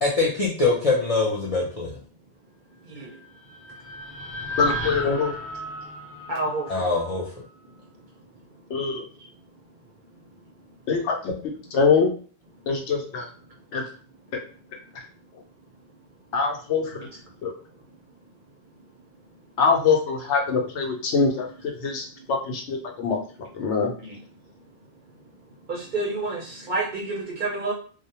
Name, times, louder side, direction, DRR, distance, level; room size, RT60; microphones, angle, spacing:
voice 1, 0.0-2.0 6.7-7.3, left 3 dB, 55° left, -6 dB, 0.4 m, -23 dB
sound 1, 3.0-7.3, right 1 dB, 20° left, 0.9 m, -35 dB
voice 2, 4.6-5.3 8.7-9.1 10.9-11.3 11.7-12.1 12.7-13.3 13.7-13.8 16.3-17.1 17.4-17.5 19.6-23.2 23.5-23.9, left 5 dB, 75° left, 2 dB, 0.9 m, -23 dB
voice 3, 6.3-6.7 8.7-8.8 9.2-9.3 24.0-24.2 25.7-27.7, right 2 dB, 55° right, -1 dB, 0.6 m, -29 dB
2.2 x 2.1 x 2.8 m, 0.42 s
omnidirectional pair, 1.2 m